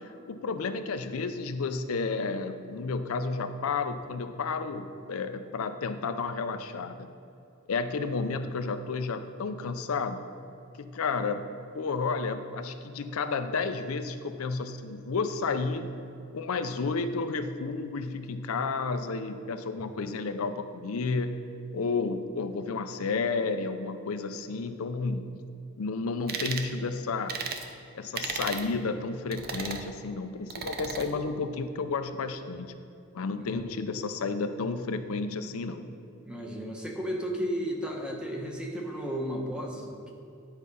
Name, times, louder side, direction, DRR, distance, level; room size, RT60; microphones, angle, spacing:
voice 1, 0.0-7.1 7.7-10.2 10.8-16.0 16.3-21.4 21.7-25.2 25.8-27.4 27.9-32.7 33.1-35.9, left 4 dB, 80° left, 9 dB, 0.5 m, -31 dB
sound 1, 26.3-26.7 27.3-27.6 28.1-28.7 29.3-29.8 30.5-31.1, right 6 dB, 45° right, 0.7 m, -34 dB
voice 2, 33.4-33.7 36.2-40.1, equal, 5° right, -1 dB, 1.0 m, -34 dB
10.5 x 4.8 x 5.4 m, 2.7 s
head